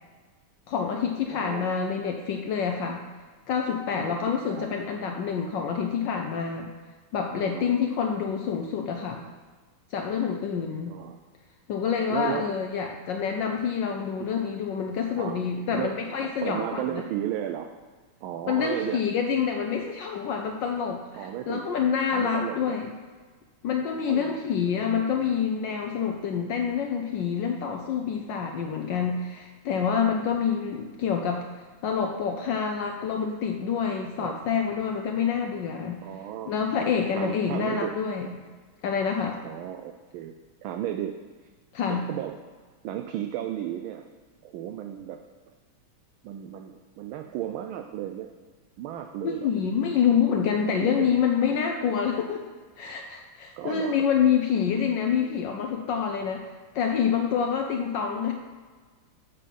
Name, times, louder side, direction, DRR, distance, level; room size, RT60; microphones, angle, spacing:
voice 1, 0.7-3.0 3.5-6.7 7.1-9.2 9.9-11.0 11.7-17.0 18.5-22.8 23.6-31.4 31.8-36.0 36.5-38.4 38.8-39.4 41.7-42.1 49.2-56.4 56.7-58.3, left 7 dB, 70° left, 3 dB, 1.1 m, -27 dB
voice 2, 1.3-1.7 4.0-4.7 7.4-7.7 10.9-11.2 12.1-12.5 14.2-14.3 15.2-15.4 15.7-17.7 18.2-19.0 21.1-21.7 22.1-22.8 24.1-24.4 34.2-34.4 36.0-36.5 37.2-38.0 39.4-40.3 40.6-41.2 41.9-42.4 42.8-44.1 44.4-45.2 46.2-48.3 48.8-49.5 50.1-50.2 50.8-51.1 53.6-54.0, right 11 dB, 75° right, 6 dB, 1.3 m, -34 dB
7.5 x 5.7 x 5.3 m, 1.4 s
omnidirectional pair, 2.4 m